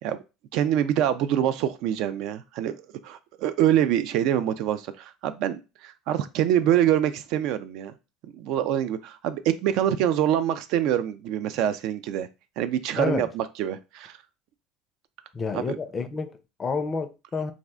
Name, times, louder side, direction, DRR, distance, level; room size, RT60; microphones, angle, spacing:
voice 1, 0.5-7.9 8.3-12.3 12.6-14.2 15.5-15.8, right 10 dB, 65° right, 0.3 m, -25 dB
voice 2, 13.0-13.3 15.3-17.5, left 4 dB, 30° left, 0.4 m, -30 dB
2.5 x 2.1 x 3.6 m
supercardioid pair, 95°, 0 cm